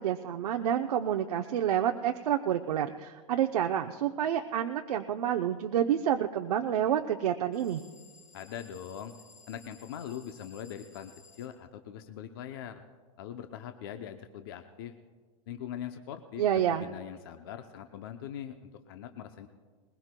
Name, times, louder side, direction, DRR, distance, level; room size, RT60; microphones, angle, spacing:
voice 1, 0.0-7.8 16.4-16.9, right 10 dB, 80° right, 4 dB, 0.7 m, -29 dB
sound 1, 7.5-11.5, left 5 dB, 15° left, 3.1 m, -57 dB
voice 2, 8.3-9.1 9.5-12.8 13.2-14.9 15.5-16.4 16.7-19.5, left 9 dB, 40° left, 7 dB, 0.6 m, -42 dB
21.0 x 21.0 x 2.2 m, 1.5 s
supercardioid pair, 175°, 20 cm